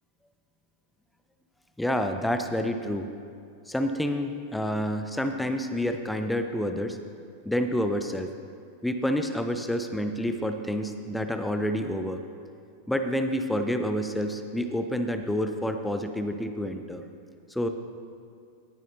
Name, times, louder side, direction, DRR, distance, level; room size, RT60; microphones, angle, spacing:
voice 1, 1.8-3.1 3.7-7.0 7.5-8.3 8.8-12.2 12.9-17.0 17.5-17.7, equal, 5° left, 7 dB, 0.6 m, -28 dB
18.0 x 10.5 x 2.7 m, 2.4 s
figure-of-eight pair, 90°, 0 cm